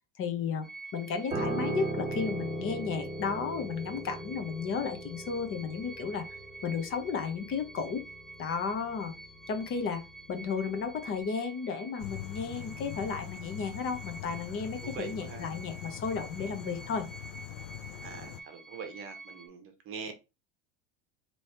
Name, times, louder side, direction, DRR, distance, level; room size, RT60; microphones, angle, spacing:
voice 1, 0.2-0.7 0.9-6.3 6.6-8.0 8.4-9.1 9.5-17.1, left 5 dB, 35° left, 0.9 m, -33 dB
sound 1, 0.6-19.5, right 3 dB, ahead, 0.7 m, -49 dB
Piano, 1.3-10.7 11.0-11.2, right 2 dB, 15° right, 1.5 m, -39 dB
sound 2, 12.0-18.4, left 12 dB, 60° left, 0.6 m, -43 dB
voice 2, 14.8-15.5 18.0-20.1, right 5 dB, 35° right, 1.0 m, -43 dB
3.3 x 3.1 x 4.3 m
supercardioid pair, 145°, 36 cm